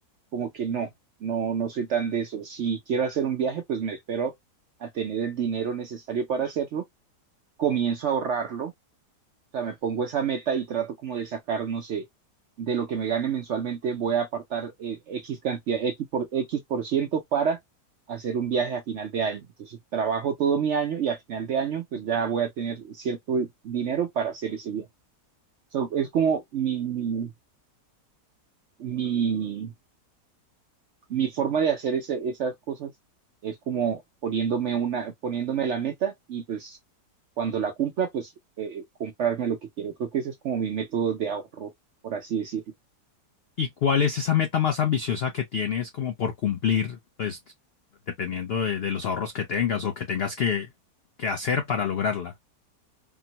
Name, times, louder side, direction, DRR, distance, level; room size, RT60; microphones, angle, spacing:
voice 1, 0.3-0.9 1.2-4.3 4.8-6.8 7.6-8.7 9.5-12.0 12.6-17.6 18.1-24.9 25.7-27.3 28.8-29.7 31.1-32.9 33.4-36.8 37.4-38.3 38.6-41.7 42.0-42.6, right 7 dB, 65° right, 0.7 m, -28 dB
voice 2, 43.6-47.4 48.2-50.7 51.2-52.3, left 7 dB, 75° left, 0.5 m, -26 dB
3.6 x 2.0 x 2.7 m
omnidirectional pair, 1.7 m